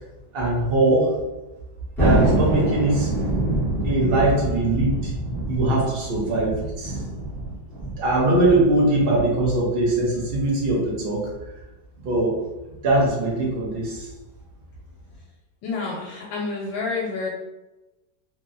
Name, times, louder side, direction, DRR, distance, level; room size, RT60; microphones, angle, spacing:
voice 1, 0.3-1.2 2.0-3.1 3.8-5.1 5.5-7.0 8.0-11.2 12.0-12.4 12.8-14.1, right 2 dB, 90° right, -4 dB, 0.5 m, -21 dB
Thunder, 2.0-8.8, right 1 dB, ahead, 0.4 m, -25 dB
voice 2, 15.6-17.3, left 4 dB, 85° left, -3 dB, 1.3 m, -28 dB
2.9 x 2.8 x 2.5 m, 1.0 s
omnidirectional pair, 2.0 m